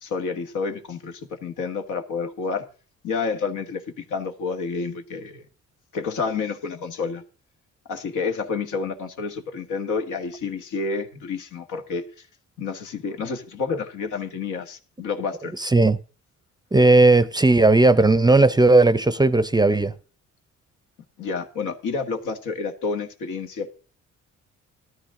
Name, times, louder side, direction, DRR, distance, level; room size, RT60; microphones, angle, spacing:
voice 1, 0.0-2.6 3.0-5.4 5.9-7.2 7.9-12.0 12.6-15.5 21.2-23.7, left 4 dB, 80° left, 1.6 m, -29 dB
voice 2, 15.6-16.0 16.7-19.9, right 2 dB, 15° right, 0.6 m, -16 dB
13.0 x 12.5 x 3.7 m
cardioid pair, 90°, 30 cm